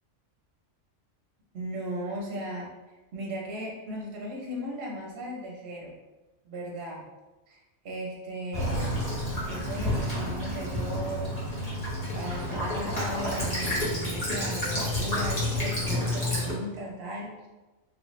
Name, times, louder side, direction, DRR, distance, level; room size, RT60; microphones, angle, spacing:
voice 1, 1.5-2.7 3.1-5.9 6.4-7.0 7.5-8.8 9.5-11.3 12.1-17.3, right 1 dB, 60° right, -3 dB, 0.9 m, -37 dB
Child speech kid speaking / Bird vocalization bird call bird song / Stream, 8.5-16.5, left 1 dB, 35° left, 1.0 m, -30 dB
3.3 x 2.4 x 3.1 m, 1.1 s
omnidirectional pair, 1.3 m